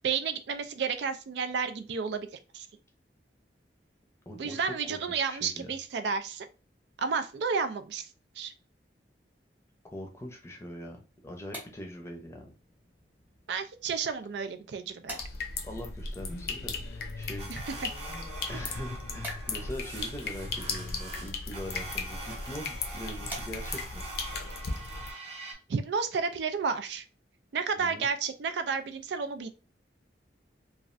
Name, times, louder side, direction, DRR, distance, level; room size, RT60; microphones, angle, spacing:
voice 1, 0.0-2.3 2.5-2.7 4.4-6.5 7.0-8.1 8.4-8.5 13.5-15.2 17.5-17.9 25.7-27.1 27.5-29.5, right 5 dB, 70° right, 9 dB, 0.4 m, -31 dB
voice 2, 4.3-5.7 9.9-12.5 15.6-17.5 17.8-18.0 18.5-24.1 27.8-28.1, equal, 15° left, 1 dB, 0.6 m, -42 dB
sound 1, 11.1-24.0, equal, 10° right, 0.9 m, -50 dB
sound 2, 15.2-25.1, left 4 dB, 60° left, 0.6 m, -37 dB
sound 3, 17.4-25.5, right 2 dB, 35° right, 0.9 m, -44 dB
3.1 x 2.4 x 2.5 m, 0.33 s
head